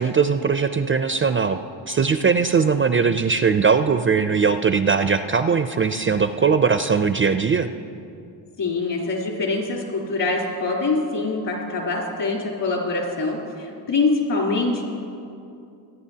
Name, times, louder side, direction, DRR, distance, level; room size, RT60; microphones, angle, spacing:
voice 1, 0.0-1.6 1.9-7.7, right 5 dB, 30° right, 9 dB, 0.4 m, -20 dB
voice 2, 8.6-14.8, left 3 dB, 60° left, -3 dB, 3.5 m, -24 dB
24.0 x 9.8 x 2.8 m, 2.5 s
cardioid pair, 85°, 46 cm